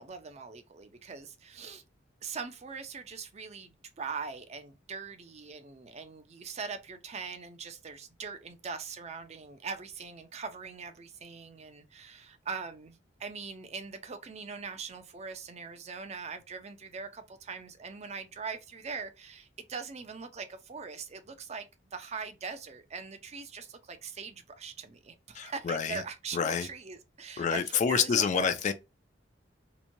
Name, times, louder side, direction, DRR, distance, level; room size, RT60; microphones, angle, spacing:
voice 1, 0.0-1.8 2.2-28.5, right 5 dB, 35° right, 0.5 m, -41 dB
voice 2, 25.4-26.0 26.3-26.7 27.4-28.7, left 6 dB, 40° left, 0.3 m, -28 dB
2.9 x 2.2 x 2.6 m
head